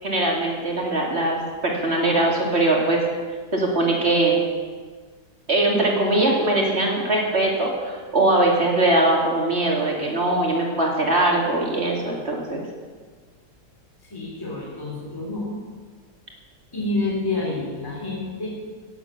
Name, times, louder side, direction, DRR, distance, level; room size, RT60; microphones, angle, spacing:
voice 1, 0.0-3.0 3.5-4.4 5.5-12.6, right 2 dB, 40° right, -1 dB, 2.7 m, -21 dB
voice 2, 14.0-15.5 16.7-18.5, left 2 dB, 15° left, -3 dB, 3.1 m, -28 dB
17.5 x 8.2 x 7.0 m, 1.5 s
omnidirectional pair, 1.8 m